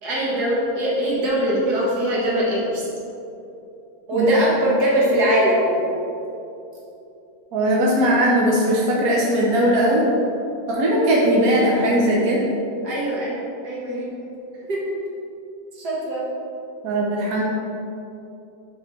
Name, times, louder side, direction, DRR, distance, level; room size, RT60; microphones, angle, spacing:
voice 1, 0.0-2.8 4.1-5.9 12.8-13.4 13.6-14.1 14.7-14.8 15.8-16.3, right 1 dB, 90° right, -5 dB, 2.0 m, -21 dB
voice 2, 7.5-10.0 10.7-12.4 16.8-17.4, right 1 dB, 70° right, -3 dB, 1.3 m, -19 dB
6.8 x 4.3 x 4.6 m, 2.8 s
omnidirectional pair, 1.6 m